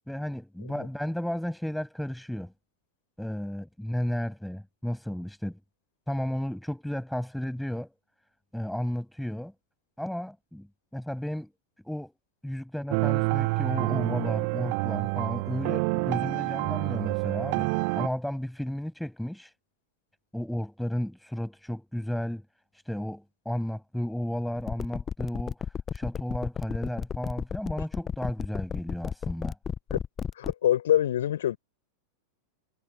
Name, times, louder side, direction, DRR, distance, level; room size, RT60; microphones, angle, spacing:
voice 1, 0.1-2.5 3.2-5.6 6.1-7.9 8.5-9.5 10.0-10.7 10.9-11.5 11.9-12.1 12.4-19.5 20.3-22.4 22.9-25.6 25.9-29.6, equal, ahead, 7.3 m, -33 dB
sound 1, 12.9-18.1, right 35 dB, 45° right, 0.8 m, -28 dB
sound 2, 24.6-30.5, left 7 dB, 20° left, 0.9 m, -32 dB
voice 2, 30.4-31.6, left 11 dB, 60° left, 4.7 m, -25 dB
figure-of-eight pair, 90°, 0 cm